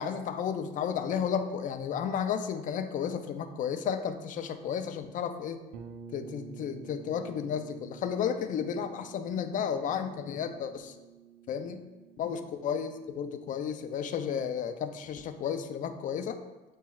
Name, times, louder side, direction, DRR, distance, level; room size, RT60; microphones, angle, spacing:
voice 1, 0.0-5.6 6.1-10.9 11.5-11.8 12.2-16.4, left 7 dB, 50° left, 9 dB, 0.4 m, -33 dB
sound 1, 5.7-15.4, right 7 dB, 80° right, 0.5 m, -51 dB
7.0 x 3.1 x 2.3 m, 1.2 s
cardioid pair, 110°, 17 cm